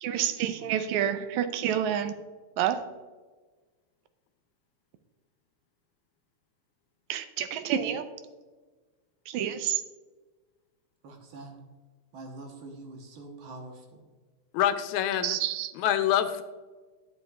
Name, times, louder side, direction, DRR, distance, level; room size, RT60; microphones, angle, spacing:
voice 1, 0.0-2.1 2.6-2.8 7.1-8.0 9.3-9.8 15.2-15.7, right 10 dB, 85° right, 10 dB, 2.0 m, -28 dB
voice 2, 11.0-11.6 12.1-14.0, right 2 dB, 60° right, 2 dB, 1.6 m, -44 dB
voice 3, 14.5-15.4 15.8-16.4, left 10 dB, 85° left, 10 dB, 2.0 m, -26 dB
11.0 x 7.1 x 2.3 m, 1.3 s
omnidirectional pair, 3.3 m